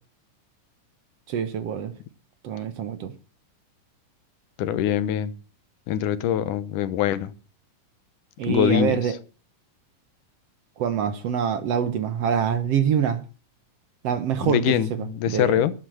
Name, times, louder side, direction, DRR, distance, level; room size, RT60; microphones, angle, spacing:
voice 1, 1.3-1.9 2.4-3.1 8.4-9.2 10.8-13.2 14.0-15.6, right 8 dB, 60° right, 1.9 m, -25 dB
voice 2, 4.6-5.3 5.9-7.3 8.5-9.0 14.5-15.7, left 10 dB, 80° left, 2.5 m, -23 dB
11.5 x 10.5 x 7.7 m
omnidirectional pair, 3.6 m